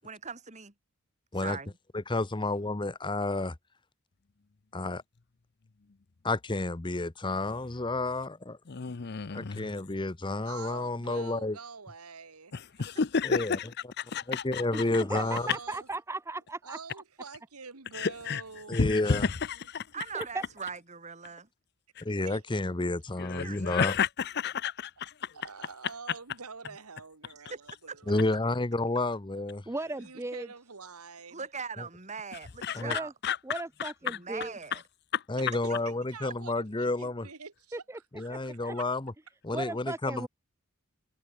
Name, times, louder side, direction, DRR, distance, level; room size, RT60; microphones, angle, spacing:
voice 1, 0.0-0.7 1.4-1.7 19.9-21.5 23.3-24.0 27.5-27.6 27.9-28.0 31.3-33.1 34.0-34.8, right 5 dB, 30° right, 3.0 m, -40 dB
voice 2, 1.9-3.5 4.7-5.0 6.2-8.6 9.3-11.6 13.2-13.6 14.3-15.5 18.7-19.3 22.0-23.9 28.1-29.6 31.8-31.9 32.7-33.0 35.3-37.3 38.1-39.1 39.4-40.3, left 2 dB, 20° left, 0.8 m, -30 dB
voice 3, 8.7-9.7 12.5-13.5 14.1-15.0 17.9-18.4 18.7-19.4 22.0-22.1 23.2-24.9 32.6-34.2 34.7-34.8 35.1-35.2, left 5 dB, 50° left, 0.6 m, -31 dB
voice 4, 10.5-12.6 15.1-15.9 16.6-19.0 21.3-21.4 22.2-22.4 22.7-22.9 25.3-28.3 29.9-31.5 35.4-37.8 38.2-38.8, right 5 dB, 85° right, 1.9 m, -46 dB
voice 5, 15.1-16.8 20.1-20.4 29.7-30.5 32.8-33.1 33.4-34.5 37.7-38.0 38.3-38.8 39.5-40.3, right 2 dB, 10° right, 0.6 m, -37 dB
head